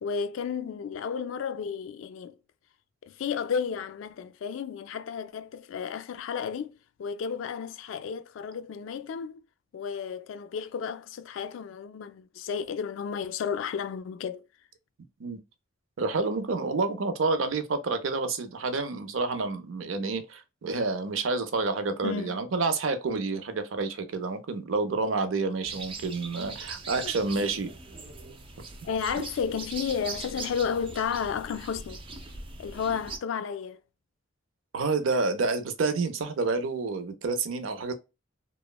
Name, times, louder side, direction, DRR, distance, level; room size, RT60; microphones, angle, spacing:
voice 1, 0.0-2.4 3.0-6.7 7.0-9.4 9.7-14.5 22.0-22.4 27.0-27.1 28.8-32.0 32.6-33.8, left 6 dB, 75° left, 0.3 m, -32 dB
voice 2, 16.0-27.7 34.7-37.9, right 3 dB, 80° right, 0.5 m, -29 dB
sound 1, 25.6-33.2, right 4 dB, 25° right, 0.4 m, -41 dB
2.9 x 2.1 x 2.2 m
head